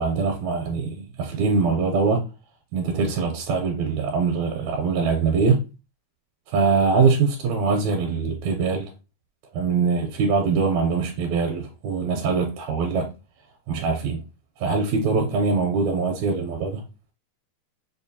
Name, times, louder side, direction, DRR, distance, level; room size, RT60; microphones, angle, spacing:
voice 1, 0.0-2.2 2.7-5.6 6.5-8.9 9.5-13.1 13.7-14.2 14.6-16.8, right 4 dB, 80° right, 1.9 m, -23 dB
5.1 x 2.2 x 2.7 m
omnidirectional pair, 3.3 m